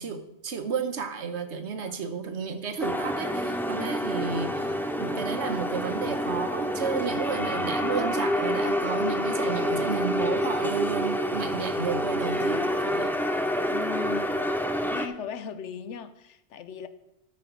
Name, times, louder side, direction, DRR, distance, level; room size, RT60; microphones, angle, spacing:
voice 1, 0.0-13.2, right 5 dB, 70° right, 8 dB, 1.2 m, -32 dB
sound 1, 2.8-15.1, equal, 5° left, 0.3 m, -28 dB
voice 2, 13.7-14.5 14.9-16.9, left 7 dB, 80° left, 12 dB, 1.1 m, -38 dB
12.5 x 6.3 x 4.6 m, 0.89 s
omnidirectional pair, 1.2 m